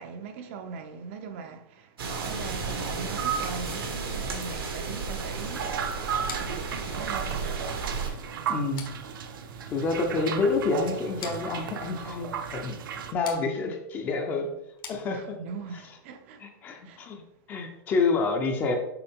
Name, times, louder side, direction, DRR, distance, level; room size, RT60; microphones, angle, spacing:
voice 1, 0.0-6.0 6.3-7.6 15.1-16.5 16.8-17.1 17.6-17.7, right 5 dB, 35° right, 0.5 m, -40 dB
sound 1, 2.0-8.1, right 5 dB, 90° right, 1.5 m, -32 dB
sound 2, 5.2-13.1, right 7 dB, 65° right, 0.8 m, -35 dB
sound 3, 6.3-15.6, left 7 dB, 70° left, 1.4 m, -47 dB
voice 2, 8.5-8.9 9.7-12.8 13.1-14.5 14.9-15.2 16.4-17.2 17.5-18.8, left 3 dB, 15° left, 0.5 m, -28 dB
6.8 x 4.4 x 3.6 m
supercardioid pair, 170°, 12 cm